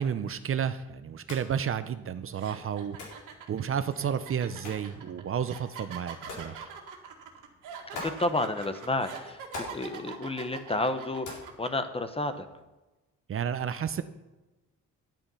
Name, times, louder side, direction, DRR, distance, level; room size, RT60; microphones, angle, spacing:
voice 1, 0.0-3.0 3.5-6.7 13.3-14.0, right 8 dB, 45° right, 11 dB, 0.6 m, -31 dB
sound 1, 1.1-12.6, left 3 dB, 85° left, 4.1 m, -48 dB
sound 2, 1.7-1.9 2.4-11.7, right 7 dB, 85° right, 1.9 m, -44 dB
voice 2, 7.9-12.5, left 2 dB, 20° left, 9 dB, 1.0 m, -31 dB
10.5 x 8.8 x 5.6 m, 1.1 s
cardioid pair, 90°, 30 cm